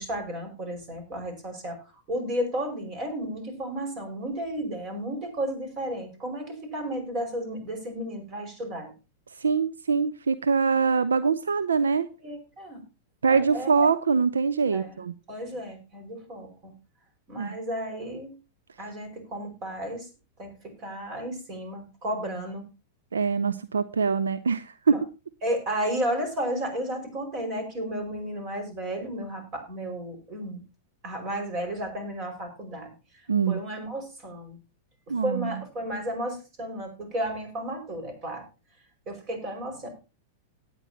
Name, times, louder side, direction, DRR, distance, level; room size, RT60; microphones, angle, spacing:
voice 1, 0.0-8.9 12.2-12.8 13.3-13.9 14.7-15.0 15.3-16.7 17.3-18.3 18.8-20.1 20.4-22.6 24.9-25.0 25.4-30.6 31.0-32.9 33.5-34.6 35.1-38.4 39.1-39.9, right 1 dB, 40° right, 5 dB, 5.4 m, -33 dB
voice 2, 9.4-12.1 13.2-15.1 17.4-17.6 23.1-25.0 33.3-33.6 35.1-35.6, right 5 dB, 80° right, 14 dB, 0.6 m, -24 dB
18.0 x 8.9 x 2.8 m, 0.31 s
figure-of-eight pair, 100°, 0 cm